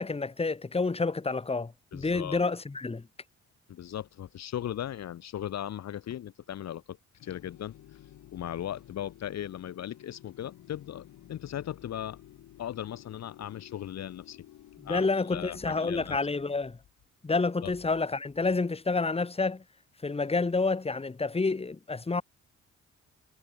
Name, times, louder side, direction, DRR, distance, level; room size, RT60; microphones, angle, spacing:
voice 1, 0.0-3.1 14.8-16.8 17.2-19.6 20.0-22.2, left 3 dB, 20° left, 2.0 m, -29 dB
voice 2, 1.9-2.4 3.7-7.0 7.2-8.0 8.3-12.2 12.6-14.4 14.8-16.2 17.6-17.7, left 11 dB, 60° left, 1.3 m, -38 dB
sound 1, 7.2-15.5, left 13 dB, 80° left, 4.4 m, -53 dB
cardioid pair, 90°, 30 cm